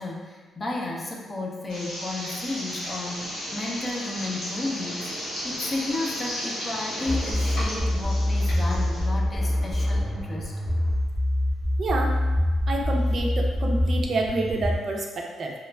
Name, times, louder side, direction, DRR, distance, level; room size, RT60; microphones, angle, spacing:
voice 1, 0.0-10.5, left 2 dB, 35° left, -1 dB, 0.5 m, -33 dB
sound 1, 1.7-9.0, equal, 85° left, 1.1 m, -35 dB
sound 2, 3.0-11.0, equal, 10° right, 0.6 m, -44 dB
sound 3, 7.1-14.7, left 1 dB, 55° left, 1.2 m, -25 dB
voice 2, 11.8-12.1 12.7-15.5, right 2 dB, 55° right, 1 dB, 0.4 m, -28 dB
2.9 x 2.3 x 2.2 m, 1.4 s
cardioid pair, 75°, 0 cm